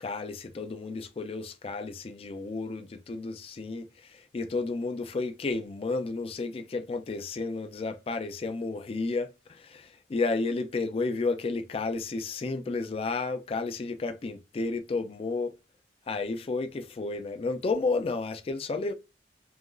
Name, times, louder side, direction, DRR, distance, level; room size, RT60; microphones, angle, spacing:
voice 1, 0.0-15.6 16.1-18.9, left 3 dB, 30° left, 0.3 m, -32 dB
2.8 x 2.5 x 2.2 m
head